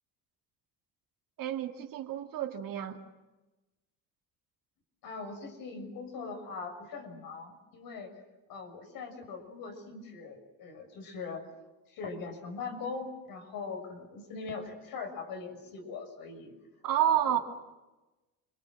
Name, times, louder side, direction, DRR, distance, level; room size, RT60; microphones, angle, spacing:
voice 1, 1.4-3.0 16.8-17.4, right 11 dB, 65° right, 3 dB, 2.9 m, -29 dB
voice 2, 5.0-8.1 8.5-11.5 11.9-16.5 17.0-17.4, left 4 dB, 70° left, 4 dB, 6.9 m, -41 dB
29.0 x 23.5 x 7.7 m, 1.1 s
cardioid pair, 125°, 36 cm